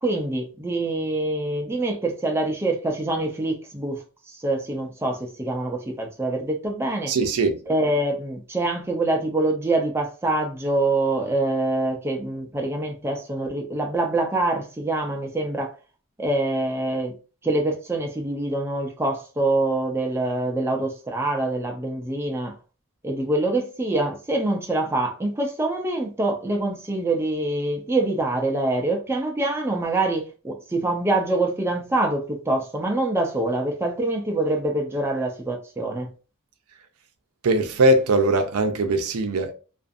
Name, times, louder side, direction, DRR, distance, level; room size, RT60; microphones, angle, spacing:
voice 1, 0.0-7.1 7.7-15.7 16.2-17.1 17.4-22.5 23.0-36.1, right 2 dB, 10° right, 0.4 m, -25 dB
voice 2, 7.1-7.6 37.4-39.5, right 2 dB, 85° right, 0.5 m, -20 dB
2.5 x 2.4 x 2.5 m
head